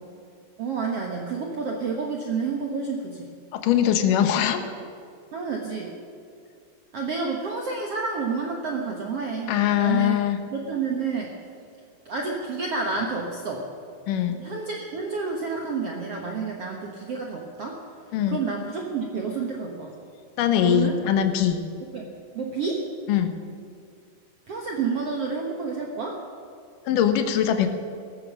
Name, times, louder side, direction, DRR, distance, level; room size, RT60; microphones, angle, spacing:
voice 1, 0.6-3.3 5.3-5.9 6.9-10.2 10.5-11.3 12.0-13.6 14.3-17.8 18.3-19.9 20.6-20.9 21.9-22.1 22.3-22.8 24.5-26.2, right 4 dB, 65° right, 0 dB, 1.5 m, -29 dB
voice 2, 3.5-4.6 9.5-10.4 14.1-14.4 18.1-18.4 20.4-21.6 23.1-23.3 26.9-27.7, left 10 dB, 65° left, 8 dB, 2.3 m, -22 dB
17.0 x 13.5 x 6.3 m, 2.3 s
omnidirectional pair, 4.7 m